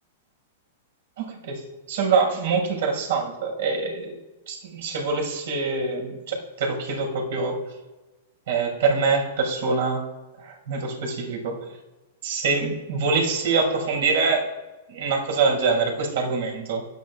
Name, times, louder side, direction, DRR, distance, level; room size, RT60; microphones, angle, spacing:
voice 1, 1.2-4.2 4.5-7.6 8.5-10.1 10.4-11.6 12.2-14.5 14.9-16.8, right 4 dB, 70° right, 1 dB, 5.5 m, -25 dB
24.0 x 13.5 x 2.4 m, 1.1 s
hypercardioid pair, 135°, 0 cm